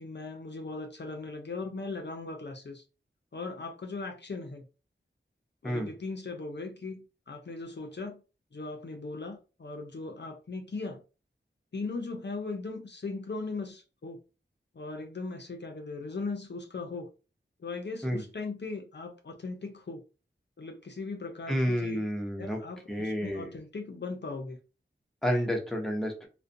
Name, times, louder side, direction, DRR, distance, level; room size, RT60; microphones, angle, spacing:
voice 1, 0.0-2.8 3.3-4.7 5.6-8.2 8.5-11.0 11.7-14.2 14.7-17.1 17.6-20.0 20.6-22.0 22.4-24.6, left 3 dB, 55° left, 0.5 m, -38 dB
voice 2, 21.5-22.6 22.9-23.5 25.2-26.3, equal, ahead, 0.7 m, -30 dB
2.4 x 2.1 x 2.5 m
wide cardioid pair, 50°, 21 cm